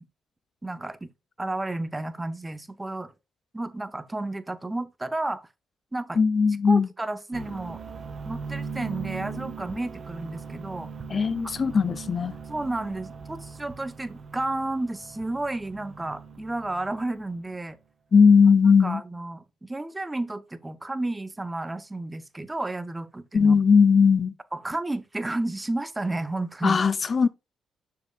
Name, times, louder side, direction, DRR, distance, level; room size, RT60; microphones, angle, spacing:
voice 1, 0.6-1.1 1.4-3.1 3.5-5.5 5.9-6.2 6.7-7.8 8.2-10.9 12.5-17.8 18.8-23.5 24.5-26.8, right 2 dB, 15° right, 0.8 m, -32 dB
voice 2, 6.1-6.9 11.1-12.4 18.1-19.0 23.3-24.3 26.6-27.3, left 5 dB, 40° left, 0.4 m, -19 dB
sound 1, 7.3-17.6, right 5 dB, 45° right, 1.3 m, -40 dB
6.7 x 6.7 x 2.3 m
cardioid pair, 90°, 0 cm